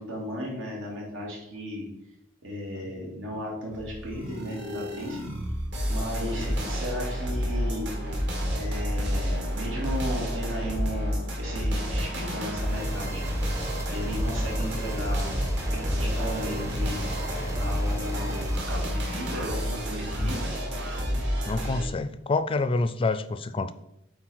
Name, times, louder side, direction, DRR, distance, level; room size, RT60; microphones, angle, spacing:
voice 1, 0.0-1.9 2.4-5.2 5.9-7.9 8.5-13.2 13.9-15.3 15.7-17.0 17.6-20.5, equal, 85° right, -3 dB, 2.8 m, -35 dB
sound 1, 3.7-21.8, equal, 65° right, 2.2 m, -29 dB
sound 2, 12.7-18.6, right 1 dB, 15° right, 0.6 m, -38 dB
voice 2, 20.2-20.5 21.5-23.7, left 3 dB, 30° left, 10 dB, 0.4 m, -28 dB
8.5 x 4.1 x 4.6 m, 0.81 s
head